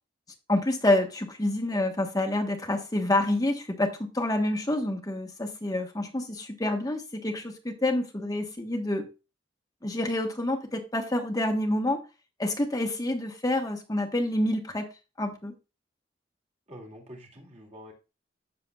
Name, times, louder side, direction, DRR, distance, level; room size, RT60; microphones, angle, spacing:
voice 1, 0.5-9.1 9.8-12.0 12.4-14.9 15.2-15.5, left 1 dB, 20° left, 1.2 m, -28 dB
voice 2, 16.7-17.9, equal, 35° right, 2.5 m, -46 dB
15.5 x 6.7 x 2.3 m
head